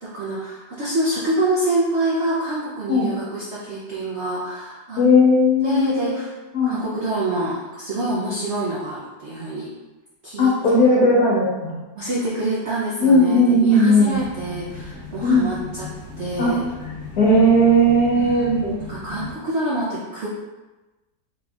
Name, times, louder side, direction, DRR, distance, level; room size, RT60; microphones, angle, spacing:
voice 1, 0.0-5.0 5.6-6.3 6.6-9.7 10.2-10.5 12.0-15.9 16.2-16.6 18.1-20.3, right 2 dB, 65° right, -6 dB, 0.6 m, -26 dB
voice 2, 5.0-6.1 6.5-6.7 10.4-11.8 13.0-14.1 15.2-15.5 16.4-16.6 17.2-18.7, left 1 dB, 60° left, -5 dB, 1.4 m, -16 dB
sound 1, 14.1-19.3, left 4 dB, 45° left, 1.4 m, -37 dB
4.0 x 3.5 x 2.3 m, 1.1 s
omnidirectional pair, 1.9 m